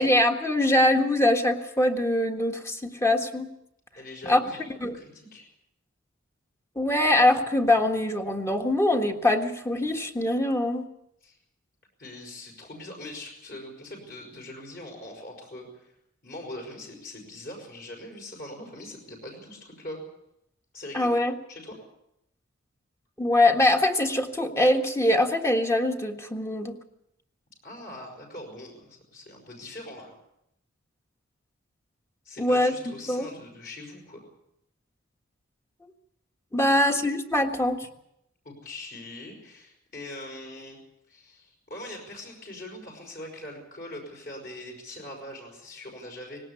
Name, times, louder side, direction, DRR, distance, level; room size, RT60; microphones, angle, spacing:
voice 1, 0.0-3.5 4.2-4.4 4.8-4.9 6.7-10.8 20.9-21.3 23.2-26.7 32.4-33.3 36.5-37.8, left 1 dB, 15° left, 4 dB, 1.6 m, -23 dB
voice 2, 3.9-5.5 11.2-11.4 12.0-15.9 16.2-20.0 20.7-21.2 21.5-21.8 27.6-30.2 32.3-34.3 36.6-36.8 38.4-40.8 41.1-46.5, left 1 dB, 50° left, 0 dB, 5.5 m, -42 dB
19.5 x 17.5 x 8.4 m, 0.80 s
head